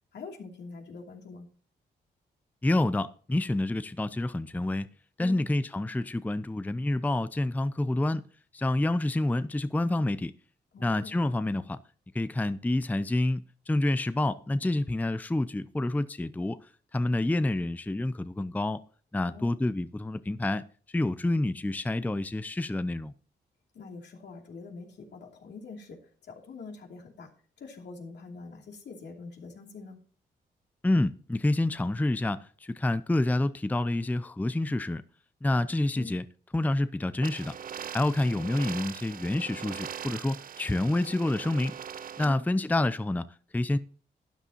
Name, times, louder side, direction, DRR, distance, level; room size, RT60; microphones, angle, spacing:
voice 1, 0.1-1.5 5.2-5.4 10.7-11.2 19.2-19.6 23.7-27.3 27.6-30.0 35.9-36.1 38.2-38.5 42.2-42.4, left 4 dB, 70° left, 2.8 m, -45 dB
voice 2, 2.6-4.9 5.2-8.2 8.5-10.3 10.8-11.8 12.1-18.8 19.1-23.1 30.8-35.0 35.4-36.2 36.5-37.6 37.9-41.8 42.2-43.3 43.5-43.8, left 2 dB, 10° left, 0.5 m, -28 dB
sound 1, 37.2-42.2, right 8 dB, 50° right, 0.5 m, -41 dB
12.5 x 9.9 x 2.9 m
supercardioid pair, 55°, 18 cm